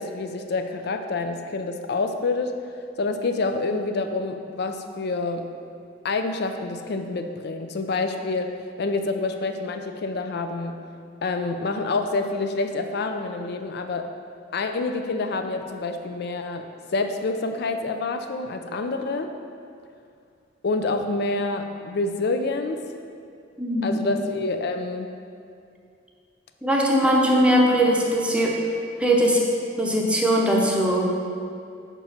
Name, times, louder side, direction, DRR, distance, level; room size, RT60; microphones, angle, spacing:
voice 1, 0.0-2.5 3.0-5.4 6.0-10.8 11.2-14.1 14.5-19.3 20.6-22.9 23.8-25.1, left 3 dB, 60° left, 6 dB, 0.4 m, -27 dB
voice 2, 23.6-24.0 26.6-28.6 29.0-29.4 29.8-31.1, equal, 5° right, -2 dB, 0.7 m, -20 dB
5.1 x 4.6 x 5.8 m, 2.4 s
head